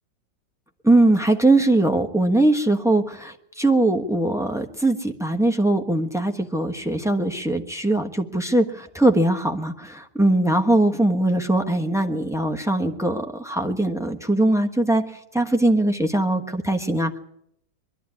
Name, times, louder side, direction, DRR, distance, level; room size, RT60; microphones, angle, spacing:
voice 1, 0.8-15.0 15.3-17.2, right 2 dB, ahead, 5 dB, 0.9 m, -21 dB
23.0 x 11.5 x 9.7 m, 0.76 s
omnidirectional pair, 2.1 m